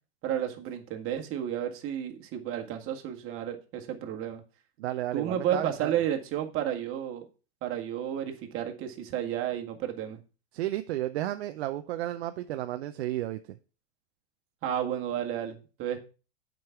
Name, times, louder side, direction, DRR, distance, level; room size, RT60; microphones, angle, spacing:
voice 1, 0.2-4.4 5.1-7.3 7.6-10.2 14.6-16.0, right 10 dB, 40° right, 3 dB, 1.9 m, -32 dB
voice 2, 4.8-5.9 10.5-13.6, right 14 dB, 75° right, 8 dB, 0.7 m, -33 dB
7.8 x 5.4 x 5.8 m, 0.33 s
supercardioid pair, 125°, 32 cm